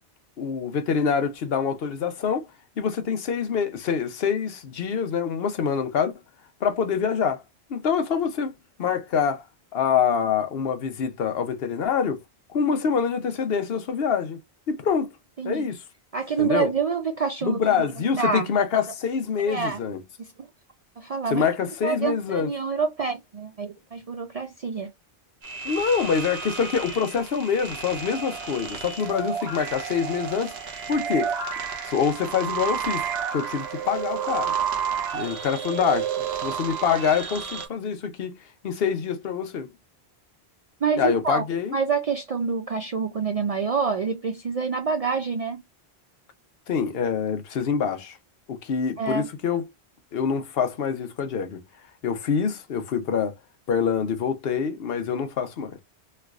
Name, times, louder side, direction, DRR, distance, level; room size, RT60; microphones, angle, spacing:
voice 1, 0.4-2.5 2.8-6.1 6.6-7.4 7.7-8.5 8.8-9.4 9.7-12.2 12.5-14.4 14.7-15.1 15.4-15.8 16.4-16.7 17.4-20.0 21.3-22.5 25.6-30.5 30.9-31.3 31.8-33.1 33.3-34.5 35.1-36.1 36.4-38.4 38.6-39.7 41.0-41.8 46.7-48.2 48.5-49.6 50.1-51.6 52.0-53.4 53.7-55.8, left 6 dB, 65° left, 0.9 m, -25 dB
voice 2, 15.4-15.7 16.1-17.9 18.2-18.5 19.5-19.8 20.2-20.3 21.0-21.4 21.8-24.9 40.8-41.4 41.7-45.6 49.0-49.3, right 5 dB, 55° right, 0.4 m, -27 dB
sound 1, 25.4-37.7, right 7 dB, 70° right, 1.1 m, -31 dB
3.2 x 3.2 x 2.3 m
omnidirectional pair, 1.1 m